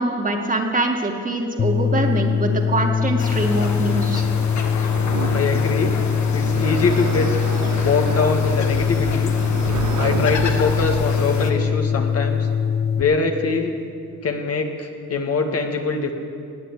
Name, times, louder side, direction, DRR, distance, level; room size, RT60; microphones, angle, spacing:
voice 1, 0.0-4.2, right 2 dB, 25° right, 2 dB, 2.1 m, -23 dB
sound 1, 1.6-13.0, left 7 dB, 35° left, 0.4 m, -22 dB
sound 2, 3.2-11.5, left 4 dB, 70° left, 1.7 m, -30 dB
sound 3, 4.9-11.1, right 11 dB, 80° right, 0.6 m, -31 dB
voice 2, 5.3-5.9 6.3-7.3 7.8-9.3 10.0-12.5 13.0-13.8 14.2-16.1, left 4 dB, 55° left, 3 dB, 1.8 m, -23 dB
19.5 x 8.2 x 8.4 m, 2.3 s
cardioid pair, 90°, 30 cm